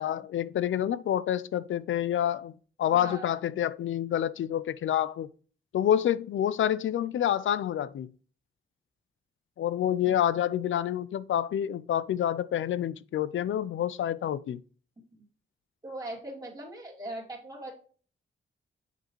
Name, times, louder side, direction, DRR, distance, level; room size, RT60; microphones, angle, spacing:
voice 1, 0.0-2.5 2.8-5.3 5.7-8.1 9.6-14.6, left 10 dB, 70° left, 0.4 m, -28 dB
voice 2, 2.9-3.4 15.1-15.2 15.8-17.7, right 1 dB, 20° right, 2.4 m, -40 dB
7.3 x 5.3 x 3.0 m
wide cardioid pair, 120°, 21 cm